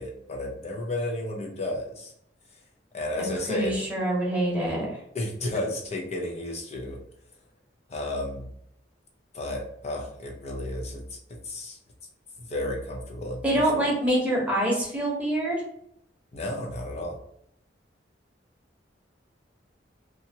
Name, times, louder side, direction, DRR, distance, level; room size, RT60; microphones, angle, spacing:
voice 1, 0.0-2.1 2.9-3.8 5.1-7.0 7.9-8.5 9.3-11.8 12.4-13.6 16.3-17.2, left 1 dB, 35° left, 0 dB, 0.6 m, -32 dB
voice 2, 3.2-4.9 13.4-15.6, right 1 dB, 10° right, -5 dB, 1.0 m, -25 dB
2.8 x 2.4 x 2.8 m, 0.70 s
head